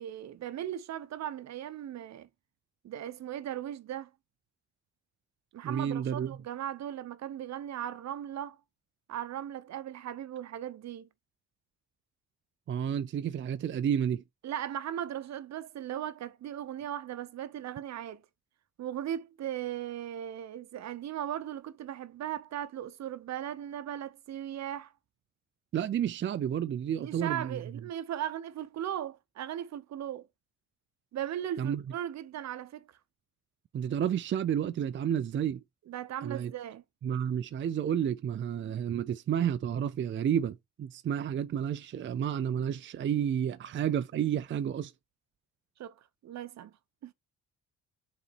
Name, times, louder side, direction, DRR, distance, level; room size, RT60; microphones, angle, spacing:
voice 1, 0.0-2.3 2.8-4.1 5.5-8.6 9.1-11.1 14.4-18.2 18.8-24.9 27.0-30.3 31.1-32.9 35.9-36.8 45.8-46.0 46.2-46.7 47.0-47.1, right 11 dB, 65° right, 0.8 m, -37 dB
voice 2, 5.6-6.4 12.7-14.2 25.7-27.6 31.6-31.8 33.7-35.6 36.2-36.5 37.0-44.9, right 9 dB, 40° right, 0.5 m, -31 dB
6.9 x 4.2 x 4.4 m
cardioid pair, 90°, 30 cm